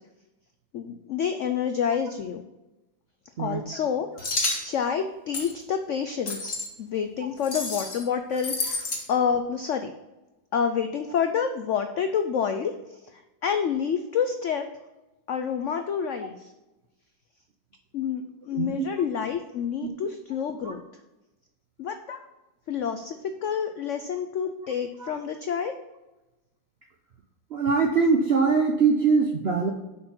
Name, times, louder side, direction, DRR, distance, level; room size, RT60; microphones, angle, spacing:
voice 1, 0.7-2.4 3.4-4.1 4.6-9.9 10.5-12.7 13.1-14.7 15.3-16.5 17.9-20.8 21.8-22.2 22.7-25.7, left 7 dB, 85° left, 8 dB, 0.6 m, -28 dB
sound 1, 4.2-4.6 5.3-5.5 6.3-6.7 7.4-8.0 8.4-9.0, left 2 dB, 35° left, 1.6 m, -29 dB
voice 2, 18.5-18.9 19.8-19.9 20.6-20.7 25.0-25.1 27.5-29.7, right 5 dB, 65° right, 3 dB, 0.6 m, -23 dB
6.5 x 5.8 x 5.9 m, 1.0 s
omnidirectional pair, 2.0 m